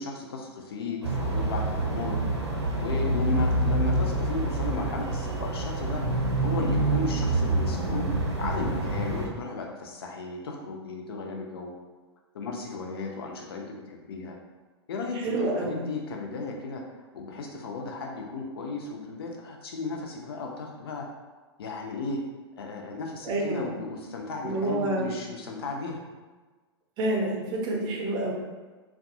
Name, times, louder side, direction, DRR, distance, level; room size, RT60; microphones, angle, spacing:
voice 1, 0.0-2.2 2.8-11.7 12.3-14.3 14.9-16.8 17.1-21.1 21.6-22.2 22.6-26.0, left 3 dB, 60° left, 1 dB, 0.5 m, -35 dB
sound 1, 1.0-9.3, right 2 dB, 90° right, 0.6 m, -27 dB
voice 2, 15.1-15.9 23.2-23.6 24.4-25.1 27.0-28.3, right 2 dB, 30° right, -1 dB, 0.6 m, -28 dB
2.5 x 2.3 x 2.5 m, 1.3 s
figure-of-eight pair, 95°, 14 cm